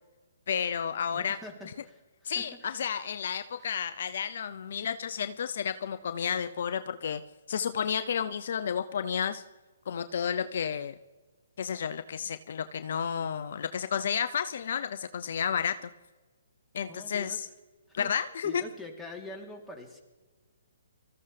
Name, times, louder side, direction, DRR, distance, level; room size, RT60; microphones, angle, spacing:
voice 1, 0.5-1.4 2.2-7.2 7.5-9.4 9.9-11.0 11.6-15.9 16.7-17.5 17.9-18.6, left 7 dB, 55° left, 12 dB, 0.6 m, -31 dB
voice 2, 1.1-2.8 3.6-3.7 16.9-17.4 17.9-20.0, left 2 dB, ahead, -2 dB, 3.3 m, -45 dB
24.5 x 14.5 x 3.4 m, 1.3 s
figure-of-eight pair, 130°, 0 cm